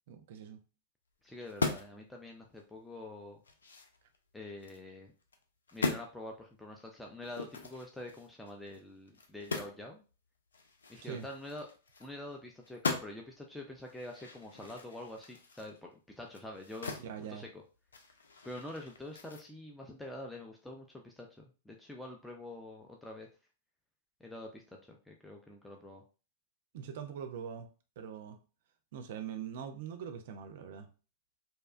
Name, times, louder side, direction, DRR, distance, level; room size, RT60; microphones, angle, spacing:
voice 1, 0.1-0.6 10.9-11.2 17.0-17.5 26.7-27.7 28.0-28.4 28.9-30.9, right 8 dB, 65° right, 0.4 m, -42 dB
voice 2, 1.2-3.4 4.3-5.1 5.7-10.0 10.9-11.7 12.0-17.0 17.3-17.6 18.4-23.3 24.2-26.0, left 1 dB, 5° left, 0.4 m, -46 dB
sound 1, 1.4-2.0 2.5-2.6 3.1-4.8 5.2-5.4 5.7-6.1 7.2-9.9 10.1-10.2 10.5-12.3 12.6-13.4 13.8-17.1 17.4-19.4, left 4 dB, 90° left, 0.4 m, -39 dB
2.7 x 2.2 x 2.4 m
hypercardioid pair, 105°, 0 cm